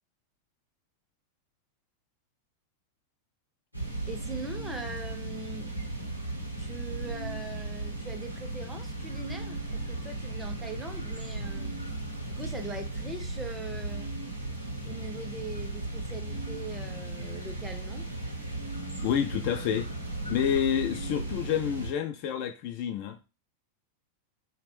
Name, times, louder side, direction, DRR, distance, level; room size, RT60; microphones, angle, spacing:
sound 1, 3.7-21.9, right 2 dB, 90° right, 0.6 m, -36 dB
voice 1, 4.1-5.8 6.6-11.8 12.3-14.1 14.8-18.2, right 2 dB, 10° right, 0.6 m, -41 dB
voice 2, 19.0-19.9 20.3-23.2, left 9 dB, 45° left, 0.3 m, -28 dB
2.4 x 2.1 x 3.5 m
figure-of-eight pair, 90°, 0 cm